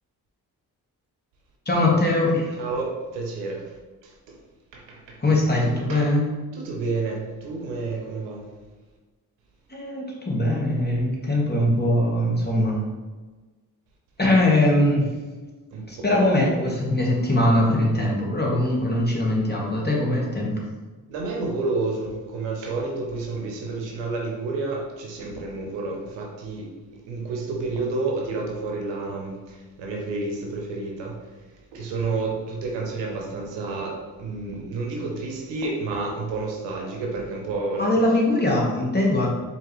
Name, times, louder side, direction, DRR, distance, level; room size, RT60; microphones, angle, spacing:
voice 1, 1.6-2.6 5.2-6.2 9.7-12.8 14.2-15.1 15.9-20.6 37.8-39.3, left 1 dB, 25° left, -3 dB, 1.4 m, -21 dB
voice 2, 2.6-3.7 4.0-4.1 4.7-5.2 5.9-6.0 6.6-8.4 15.7-16.2 21.1-26.7 27.1-31.2 31.7-37.9, right 3 dB, 85° right, -1 dB, 0.8 m, -30 dB
4.4 x 2.8 x 3.1 m, 1.3 s
supercardioid pair, 40°, 42 cm